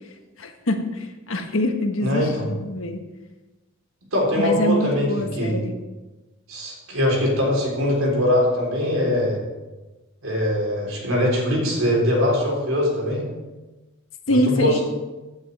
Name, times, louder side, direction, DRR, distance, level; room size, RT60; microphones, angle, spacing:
voice 1, 0.4-3.0 4.4-5.7 14.3-14.8, left 1 dB, 80° left, 5 dB, 1.3 m, -24 dB
voice 2, 2.0-2.5 4.1-5.6 6.5-9.4 10.2-13.2 14.3-14.8, left 1 dB, 80° right, -2 dB, 3.8 m, -22 dB
15.5 x 8.8 x 3.5 m, 1.1 s
head